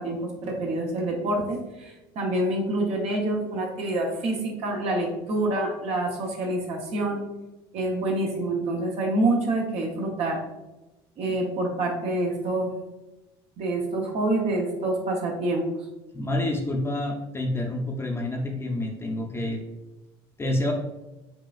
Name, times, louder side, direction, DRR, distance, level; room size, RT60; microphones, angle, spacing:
voice 1, 0.0-7.2 7.7-10.4 11.2-12.7 13.6-15.6, right 2 dB, 55° right, 0 dB, 0.9 m, -27 dB
voice 2, 16.1-19.6 20.4-20.7, left 1 dB, 20° left, 0 dB, 0.6 m, -28 dB
5.5 x 2.4 x 2.4 m, 1.0 s
supercardioid pair, 85°, 13 cm